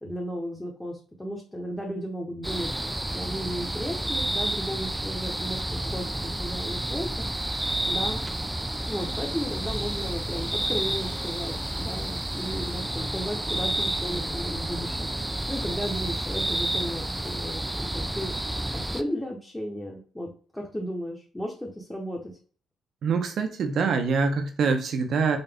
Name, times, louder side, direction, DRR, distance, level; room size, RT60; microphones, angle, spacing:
voice 1, 0.0-2.7 3.1-7.3 7.9-8.2 8.9-15.1 15.5-18.3 18.7-22.3, equal, 10° left, -1 dB, 0.9 m, -34 dB
sound 1, 2.4-19.0, right 1 dB, 10° right, 0.3 m, -30 dB
voice 2, 23.0-25.4, right 5 dB, 65° right, 7 dB, 0.8 m, -25 dB
3.9 x 2.6 x 3.4 m, 0.41 s
cardioid pair, 90°, 0 cm